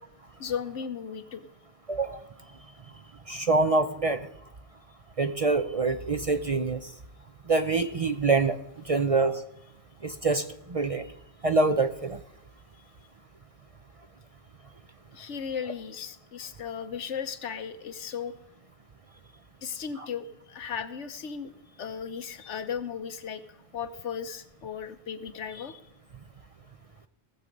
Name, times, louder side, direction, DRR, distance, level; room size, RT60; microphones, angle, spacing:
voice 1, 0.4-1.5 15.1-18.3 19.6-23.4 23.7-25.8, left 7 dB, 90° left, 10 dB, 1.2 m, -36 dB
voice 2, 1.9-2.2 3.3-4.2 5.2-6.9 7.5-8.6 8.8-9.4 10.0-11.1 11.4-12.2 20.0-20.1, right 3 dB, 45° right, 9 dB, 0.5 m, -25 dB
18.0 x 7.3 x 5.3 m, 0.85 s
omnidirectional pair, 1.2 m